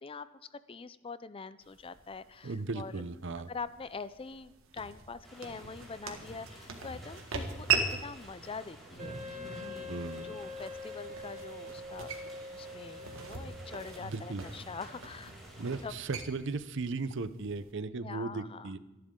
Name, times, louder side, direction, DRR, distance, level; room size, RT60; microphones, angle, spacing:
voice 1, 0.0-3.0 3.5-9.9 10.2-12.1 12.5-15.3 15.8-15.9 18.0-18.7, left 4 dB, 25° left, 15 dB, 0.4 m, -44 dB
sound 1, 1.6-17.7, right 5 dB, 80° right, 1.8 m, -40 dB
voice 2, 2.4-3.5 9.9-10.4 14.0-14.4 15.6-18.8, right 3 dB, 60° right, 13 dB, 0.7 m, -36 dB
sound 2, 5.2-15.9, equal, ahead, 5.0 m, -51 dB
Wind instrument woodwind instrument, 9.0-14.1, left 2 dB, 35° right, 2.0 m, -44 dB
25.5 x 11.5 x 3.8 m, 1.1 s
head